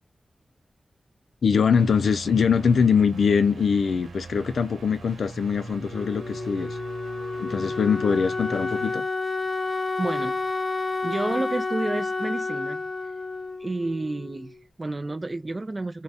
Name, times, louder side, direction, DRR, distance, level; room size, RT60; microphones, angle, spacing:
voice 1, 1.4-6.8 7.4-9.0, left 6 dB, 85° left, 0.5 m, -22 dB
sound 1, 1.7-8.9, right 4 dB, 90° right, 0.5 m, -41 dB
Wind instrument woodwind instrument, 5.9-14.6, left 3 dB, 30° left, 0.6 m, -30 dB
voice 2, 10.0-10.4 11.0-12.8 13.6-16.0, right 2 dB, 30° right, 0.4 m, -30 dB
3.5 x 2.2 x 4.1 m
wide cardioid pair, 105°, 0 cm